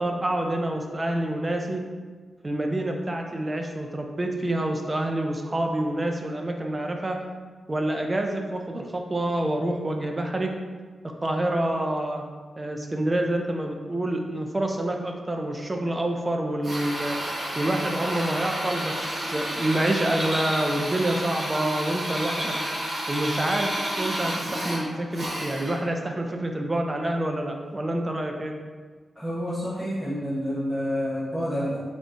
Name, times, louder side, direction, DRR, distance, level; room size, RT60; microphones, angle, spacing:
voice 1, 0.0-1.8 2.4-7.2 7.7-10.5 11.2-12.2 12.6-17.2 17.6-22.5 23.1-28.5, right 1 dB, 20° right, 3 dB, 0.4 m, -27 dB
Drill, 16.6-25.9, right 1 dB, 60° right, 1.2 m, -30 dB
voice 2, 29.2-31.8, equal, ahead, -10 dB, 0.8 m, -28 dB
3.9 x 3.4 x 2.5 m, 1.5 s
wide cardioid pair, 150°, 0 cm